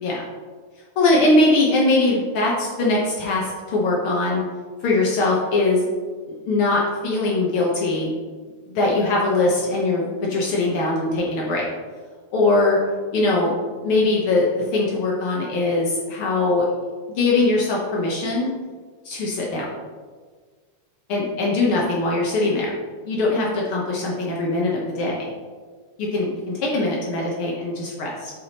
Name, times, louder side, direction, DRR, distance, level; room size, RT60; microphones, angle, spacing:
voice 1, 1.0-4.4 4.8-5.9 6.5-8.1 8.7-11.7 12.3-12.8 13.1-13.5 13.8-16.7 17.1-18.5 19.0-19.6 21.1-22.8 23.0-25.3 26.0-28.3, left 2 dB, 90° left, -3 dB, 1.1 m, -21 dB
11.5 x 4.3 x 2.9 m, 1.5 s
omnidirectional pair, 3.7 m